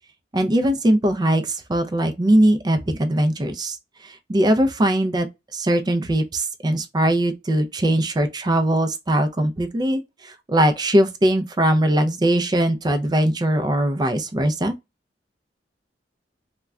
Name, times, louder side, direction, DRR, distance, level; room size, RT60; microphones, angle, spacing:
voice 1, 0.3-3.8 4.0-5.3 5.5-14.7, right 1 dB, 25° right, 0.4 m, -20 dB
2.2 x 2.2 x 3.5 m
head